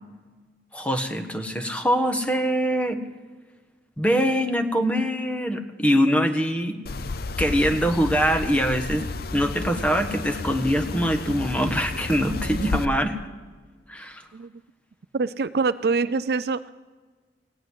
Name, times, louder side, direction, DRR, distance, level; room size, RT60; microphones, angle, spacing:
voice 1, 0.7-3.0 4.0-6.8 7.4-9.1 9.3-13.2 13.9-14.2, equal, 10° left, 6 dB, 1.3 m, -23 dB
sound 1, 6.9-12.9, left 3 dB, 60° left, 0.6 m, -32 dB
voice 2, 15.1-16.7, right 4 dB, 60° right, 14 dB, 0.5 m, -25 dB
16.5 x 8.9 x 9.5 m, 1.4 s
head